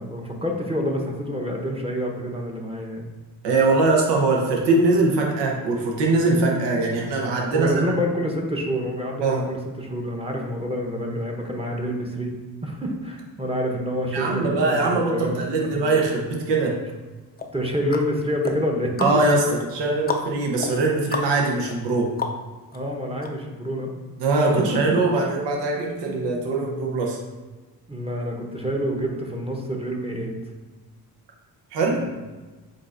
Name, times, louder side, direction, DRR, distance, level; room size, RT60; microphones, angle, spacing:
voice 1, 0.0-3.1 7.5-12.3 12.6-15.8 17.5-18.9 19.3-19.4 22.7-23.9 24.5-24.6 26.0-26.4 27.9-30.3 31.9-32.1, equal, 15° right, 0 dB, 1.0 m, -28 dB
voice 2, 3.4-8.0 9.2-9.4 14.1-16.8 19.0-22.1 24.2-27.2 31.7-32.0, right 3 dB, 75° right, -1 dB, 1.0 m, -22 dB
sound 1, 17.4-22.8 23.2-23.3, left 4 dB, 20° left, 0.5 m, -33 dB
7.5 x 2.6 x 2.6 m, 1.3 s
supercardioid pair, 55°, 43 cm